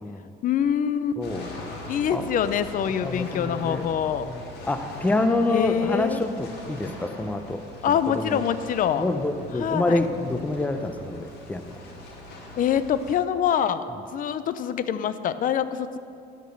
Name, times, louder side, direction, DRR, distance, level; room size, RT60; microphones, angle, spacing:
voice 1, 0.4-1.2 1.9-4.3 5.5-6.2 7.8-9.1 9.6-10.0 12.6-16.0, left 9 dB, 55° left, 13 dB, 0.6 m, -25 dB
sound 1, 1.2-13.1, left 1 dB, 75° left, 2.4 m, -41 dB
voice 2, 1.2-1.5 2.1-2.2 3.0-3.8 4.2-8.4 9.0-11.8, left 2 dB, 10° left, 7 dB, 0.7 m, -27 dB
11.0 x 5.3 x 7.9 m, 2.5 s
cardioid pair, 110°, 17 cm